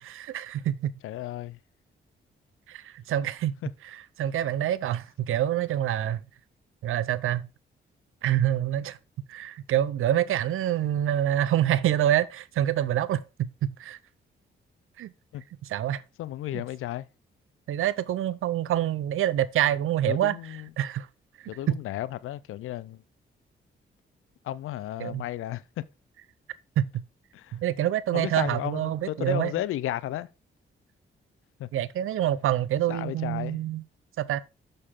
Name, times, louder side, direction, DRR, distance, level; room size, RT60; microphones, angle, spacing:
voice 1, 0.0-1.0 2.7-3.6 3.9-6.2 6.8-7.5 8.2-9.0 9.3-13.5 13.8-14.0 15.0-15.1 15.7-16.0 16.5-16.6 17.7-21.1 21.7-21.8 25.0-25.2 26.8-26.9 27.5-29.5 31.7-33.8 34.2-34.4, right 11 dB, 80° right, 0.6 m, -26 dB
voice 2, 1.0-1.6 15.3-15.4 16.2-17.1 20.1-20.7 21.5-23.0 24.4-25.8 27.3-27.6 28.1-30.3 31.6-31.7 32.9-33.6, left 13 dB, 85° left, 0.5 m, -33 dB
6.6 x 6.5 x 3.7 m
cardioid pair, 60°, 21 cm